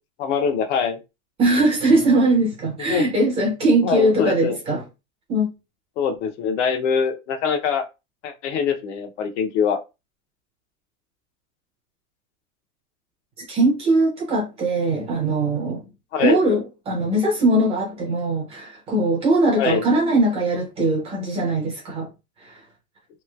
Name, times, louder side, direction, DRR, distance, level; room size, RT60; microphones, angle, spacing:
voice 1, 0.2-1.0 2.9-3.1 3.8-4.6 6.0-7.8 8.2-9.8 16.1-16.4 19.6-19.8, left 6 dB, 55° left, 0.6 m, -23 dB
voice 2, 1.4-4.8 5.3-5.5 13.4-15.8 16.2-22.1 22.4-22.6, right 2 dB, 15° right, 0.5 m, -20 dB
3.1 x 2.9 x 2.3 m
supercardioid pair, 160°, 42 cm